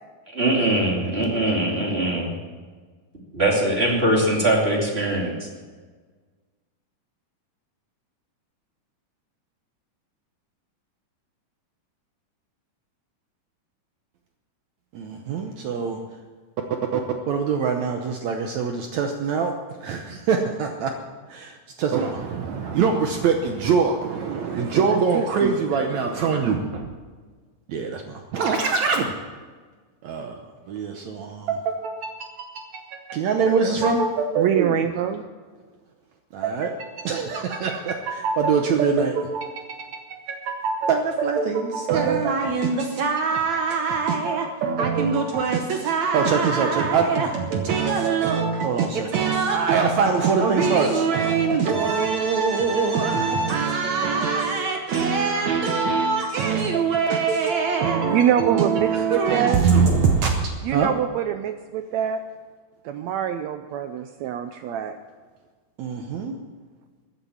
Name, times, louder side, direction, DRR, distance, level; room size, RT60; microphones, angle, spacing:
voice 1, 0.3-2.3 3.3-5.5, right 1 dB, 20° right, -1 dB, 2.4 m, -22 dB
voice 2, 14.9-16.0 16.9-17.0 17.3-19.6 19.8-20.9 21.3-26.9 27.7-29.1 30.0-30.4 30.7-34.8 36.3-60.9 65.8-66.4, right 5 dB, 70° right, 4 dB, 2.0 m, -23 dB
voice 3, 24.2-25.6 34.4-35.2 58.1-59.6 60.6-62.2 62.8-65.0, right 9 dB, 90° right, 9 dB, 1.5 m, -25 dB
14.5 x 9.7 x 7.2 m, 1.5 s
omnidirectional pair, 3.8 m